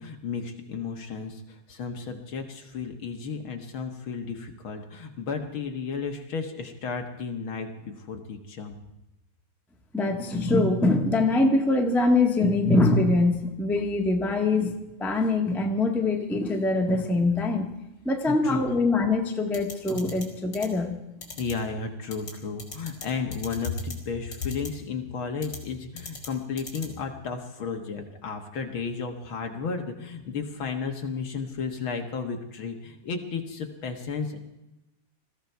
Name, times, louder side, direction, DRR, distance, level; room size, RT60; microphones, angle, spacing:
voice 1, 0.0-8.8 18.3-18.6 21.4-34.4, left 5 dB, 50° left, 4 dB, 1.8 m, -33 dB
voice 2, 9.9-14.7 15.0-17.7 18.0-21.0, left 2 dB, ahead, 1 dB, 0.6 m, -23 dB
sound 1, 19.5-20.2 20.5-20.7 21.2-21.5 22.1-22.3 22.6-23.0 23.3-23.9 24.3-24.7 25.4-25.6 26.0-26.3 26.6-26.9, left 4 dB, 35° left, 3.3 m, -38 dB
21.0 x 14.5 x 4.6 m, 0.95 s
omnidirectional pair, 3.4 m